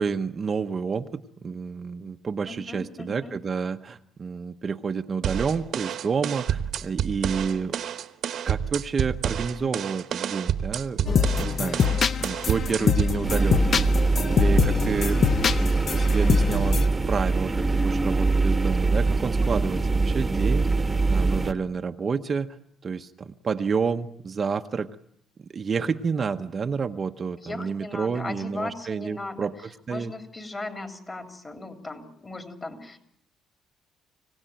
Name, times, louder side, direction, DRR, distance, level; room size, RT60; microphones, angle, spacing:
voice 1, 0.0-7.7 8.4-11.8 12.2-13.9 14.3-15.2 15.9-16.8 17.1-20.7 21.0-22.5 22.8-24.9 25.5-30.1, right 5 dB, 35° right, 6 dB, 0.9 m, -29 dB
voice 2, 2.5-3.3 27.4-29.5 29.9-33.0, left 2 dB, 25° left, 4 dB, 3.3 m, -37 dB
sound 1, 5.2-13.2, right 9 dB, 60° right, 1.2 m, -29 dB
sound 2, 11.1-16.9, left 6 dB, 45° left, 0.8 m, -24 dB
sound 3, 13.2-21.5, right 3 dB, 20° right, 1.3 m, -23 dB
25.5 x 17.0 x 9.0 m, 0.77 s
cardioid pair, 115°, 0 cm